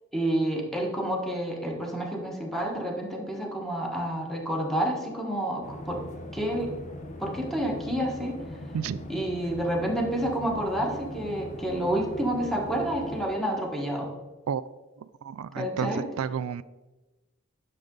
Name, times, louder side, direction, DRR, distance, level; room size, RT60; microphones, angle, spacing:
voice 1, 0.1-6.0 6.3-6.7 7.2-8.4 9.1-14.1 15.6-16.0, right 1 dB, ahead, 0 dB, 1.4 m, -29 dB
sound 1, 5.6-13.3, left 1 dB, 35° left, 0.8 m, -41 dB
voice 2, 15.2-16.6, right 7 dB, 85° right, 15 dB, 0.3 m, -31 dB
10.5 x 6.5 x 3.8 m, 1.1 s
head